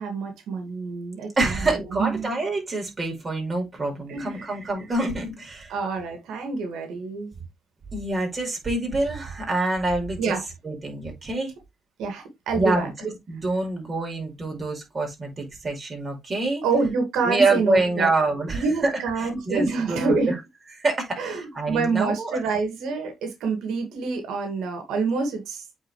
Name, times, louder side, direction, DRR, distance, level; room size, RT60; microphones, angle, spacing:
voice 1, 0.0-2.3 4.1-4.6 5.7-7.3 10.2-10.4 12.0-12.9 16.6-18.1 18.5-20.3 21.2-25.7, right 4 dB, 85° right, 2.1 m, -27 dB
voice 2, 1.4-5.7 7.9-10.3 10.6-11.5 12.5-16.6 17.2-18.9 19.2-20.3 20.8-22.4, right 2 dB, 30° right, 5.1 m, -26 dB
8.5 x 4.6 x 3.2 m
cardioid pair, 90°, 0 cm